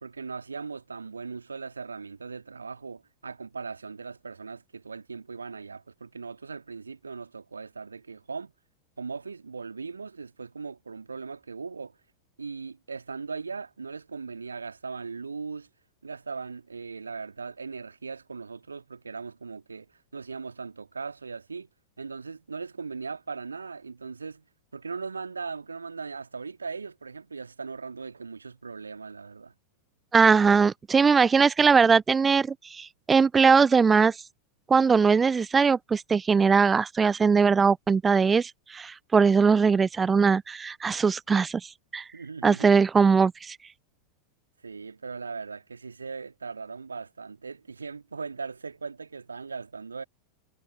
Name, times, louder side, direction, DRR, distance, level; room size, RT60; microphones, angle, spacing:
voice 1, 0.0-8.5 9.0-12.0 12.4-15.7 16.0-21.7 22.0-24.4 24.7-29.5 42.1-42.8 44.6-50.0, right 4 dB, 75° right, 1.8 m, -39 dB
voice 2, 30.1-34.2 34.7-42.0 42.4-43.6, right 5 dB, 15° right, 0.3 m, -21 dB
figure-of-eight pair, 90°, 0 cm